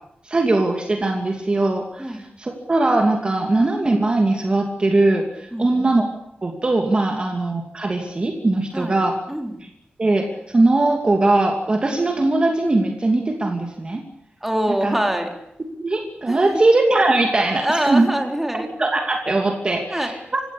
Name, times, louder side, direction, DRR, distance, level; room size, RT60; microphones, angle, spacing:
voice 1, 0.2-6.1 6.4-9.2 10.0-14.0 14.8-15.0 15.8-18.1 18.6-20.4, right 2 dB, 30° right, 3 dB, 2.7 m, -20 dB
voice 2, 5.5-5.9 7.1-7.2 8.7-9.0 9.3-9.6 14.4-15.3 16.3-16.6 17.6-18.7 19.9-20.1, right 1 dB, 5° right, 4 dB, 3.7 m, -24 dB
28.0 x 16.5 x 8.6 m, 0.79 s
wide cardioid pair, 160°, 3 cm